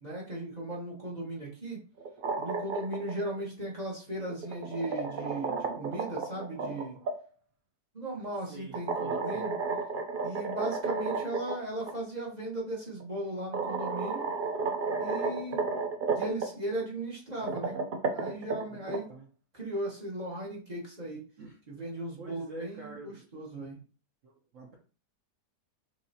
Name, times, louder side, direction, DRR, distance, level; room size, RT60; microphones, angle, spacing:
voice 1, 0.0-1.8 2.4-7.0 7.9-9.5 10.2-14.3 15.0-15.6 16.1-17.8 18.1-19.1 19.6-21.2 21.7-23.8, right 1 dB, 25° right, -4 dB, 1.3 m, -37 dB
sound 1, 2.0-3.1 4.3-7.1 8.7-11.5 11.9-12.0 13.0-13.1 13.5-16.5 17.3-19.0, right 4 dB, 85° right, 0.4 m, -32 dB
voice 2, 8.5-9.5 18.7-19.3 21.4-21.6 22.2-23.2 24.2-24.7, right 2 dB, 55° right, -2 dB, 1.1 m, -47 dB
6.3 x 2.8 x 2.8 m, 0.37 s
omnidirectional pair, 1.8 m